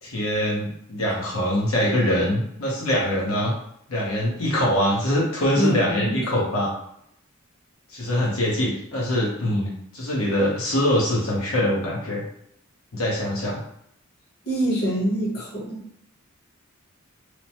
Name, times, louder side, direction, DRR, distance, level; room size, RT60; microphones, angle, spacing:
voice 1, 0.0-3.5 3.9-6.7 7.9-12.2 12.9-13.6, left 1 dB, 85° left, -4 dB, 0.8 m, -23 dB
voice 2, 5.6-6.1 14.5-15.8, equal, 50° left, -5 dB, 0.9 m, -24 dB
3.0 x 2.0 x 2.8 m, 0.72 s
head